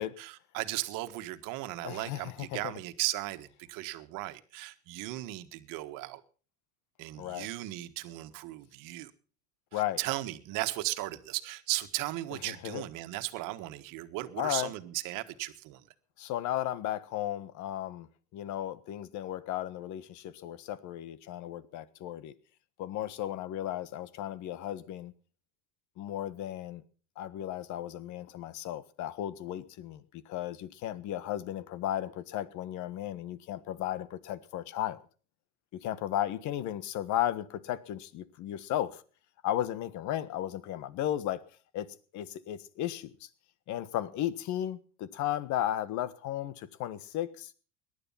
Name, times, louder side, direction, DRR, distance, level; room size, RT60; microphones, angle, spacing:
voice 1, 0.0-6.2 7.0-9.1 9.7-15.8, right 18 dB, 60° right, 1.6 m, -36 dB
voice 2, 1.8-2.7 7.2-7.5 9.7-10.0 12.4-12.8 14.4-14.7 16.2-18.1 18.3-22.3 22.8-25.1 26.0-26.8 27.2-35.0 35.7-39.0 39.4-41.4 41.7-41.9 42.1-43.3 43.7-47.5, left 12 dB, 55° left, 1.5 m, -35 dB
18.5 x 11.5 x 5.7 m
supercardioid pair, 110°, 35 cm